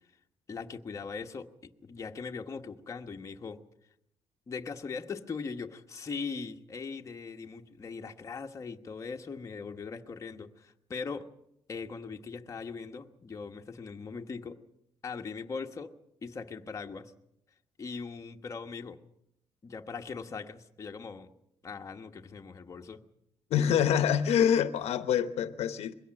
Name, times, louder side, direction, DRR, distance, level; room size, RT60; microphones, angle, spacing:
voice 1, 0.5-3.6 4.5-11.3 11.7-14.6 15.0-17.1 17.8-19.0 19.6-21.3 21.6-23.0, left 5 dB, 30° left, 3 dB, 1.2 m, -40 dB
voice 2, 23.5-25.9, left 9 dB, 70° left, 11 dB, 1.0 m, -26 dB
22.0 x 16.5 x 7.6 m, 0.77 s
cardioid pair, 140°, 11 cm